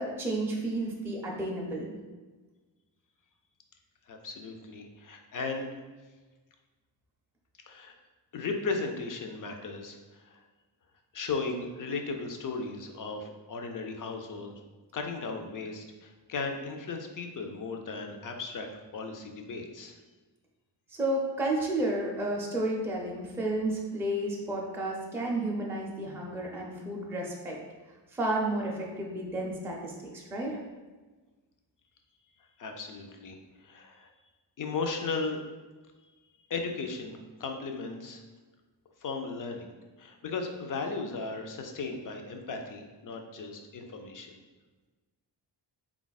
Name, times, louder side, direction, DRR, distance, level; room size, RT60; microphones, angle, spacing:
voice 1, 0.0-2.0 20.9-27.6 28.1-30.6, right 1 dB, 5° right, -2 dB, 0.4 m, -32 dB
voice 2, 4.1-5.7 7.6-7.9 8.3-10.4 11.1-14.5 14.9-20.0 32.6-33.4 33.6-34.1 34.6-35.4 36.5-38.2 39.0-39.7 40.0-44.3, left 4 dB, 50° left, 4 dB, 0.5 m, -36 dB
4.1 x 2.4 x 3.9 m, 1.3 s
wide cardioid pair, 175°, 43 cm